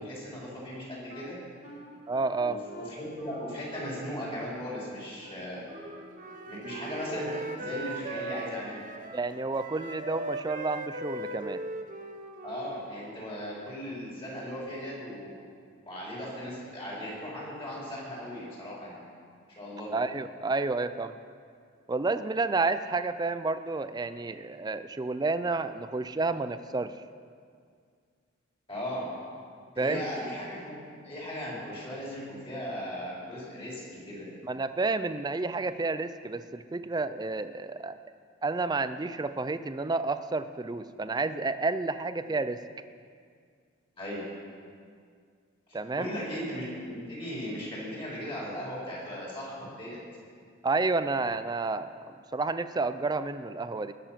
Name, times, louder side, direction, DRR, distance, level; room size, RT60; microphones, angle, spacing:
voice 1, 0.0-1.4 2.4-5.6 6.5-8.9 12.4-15.3 15.9-19.0 19.6-19.9 28.7-29.1 29.7-34.3 42.2-42.4 44.0-44.2 45.9-50.0, equal, 25° left, -6 dB, 4.0 m, -37 dB
Wind instrument woodwind instrument, 1.1-8.7, right 1 dB, 85° left, 3.3 m, -48 dB
voice 2, 2.1-2.6 9.1-11.6 19.9-21.2 21.9-26.9 29.8-30.0 34.4-38.0 38.4-42.6 45.7-46.1 50.6-51.9 52.3-53.9, right 3 dB, 20° right, 12 dB, 0.4 m, -30 dB
Wind instrument woodwind instrument 2, 5.7-13.4, right 2 dB, 40° right, 0.8 m, -39 dB
20.0 x 6.9 x 5.8 m, 2.1 s
head